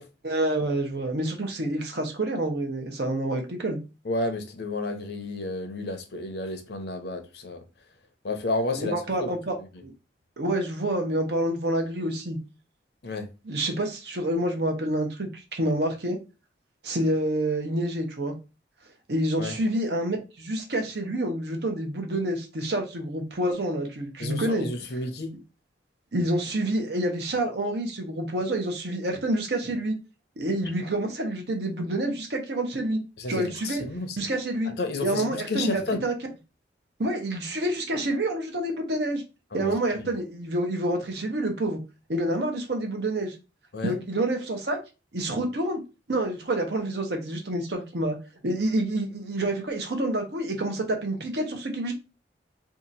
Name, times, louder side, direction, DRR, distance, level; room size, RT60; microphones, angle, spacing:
voice 1, 0.2-3.8 8.7-9.5 9.8-9.9 10.4-12.4 13.4-16.2 16.8-18.3 19.1-24.7 26.1-29.9 30.4-33.0 33.3-33.8 34.2-34.7 35.0-36.1 37.0-39.2 39.5-41.8 42.1-43.4 43.8-44.8 45.1-45.8 46.1-48.2 48.4-51.9, right 1 dB, 65° right, 0.8 m, -28 dB
voice 2, 4.0-7.6 8.2-9.3 9.7-9.8 13.0-13.3 19.4-19.6 24.2-25.3 33.2-34.2 34.7-36.0 39.5-40.1 43.7-43.9, left 2 dB, 60° left, 0.6 m, -31 dB
2.8 x 2.5 x 3.9 m
head